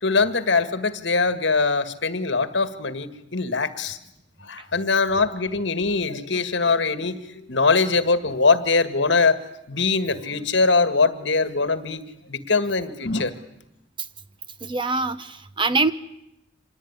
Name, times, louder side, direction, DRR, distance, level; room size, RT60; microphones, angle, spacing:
voice 1, 0.0-4.0 4.4-9.4 9.7-12.0 12.3-13.3, left 4 dB, 65° left, 12 dB, 1.7 m, -22 dB
voice 2, 14.6-15.9, right 3 dB, 25° right, 13 dB, 1.0 m, -23 dB
26.0 x 19.0 x 9.8 m, 0.84 s
head